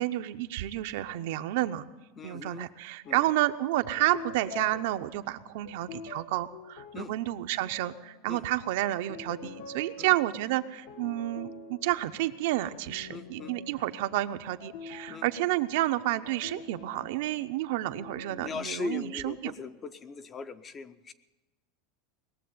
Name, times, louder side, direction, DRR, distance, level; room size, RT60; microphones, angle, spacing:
voice 1, 0.0-1.8 2.2-19.5, right 16 dB, 60° right, 10 dB, 0.7 m, -30 dB
voice 2, 2.2-2.7 3.1-3.3 6.9-7.1 8.3-8.4 10.0-10.1 13.1-13.5 15.1-15.2 18.4-21.1, left 4 dB, 20° left, 12 dB, 0.5 m, -39 dB
sound 1, 3.1-3.3 3.8-8.4 8.8-18.5, left 4 dB, 65° left, 1.3 m, -46 dB
19.5 x 7.6 x 9.3 m, 1.1 s
supercardioid pair, 170°, 0 cm